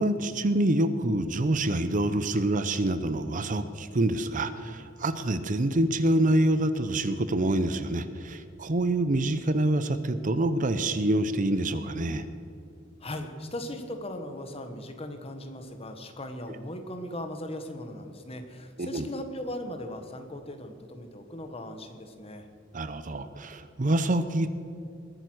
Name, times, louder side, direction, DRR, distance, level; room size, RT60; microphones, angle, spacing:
voice 1, 0.0-12.2 18.8-19.1 22.7-24.5, right 1 dB, 45° right, 12 dB, 0.7 m, -26 dB
voice 2, 13.0-22.5, left 1 dB, 30° left, 6 dB, 1.4 m, -38 dB
20.5 x 9.1 x 6.3 m, 2.5 s
head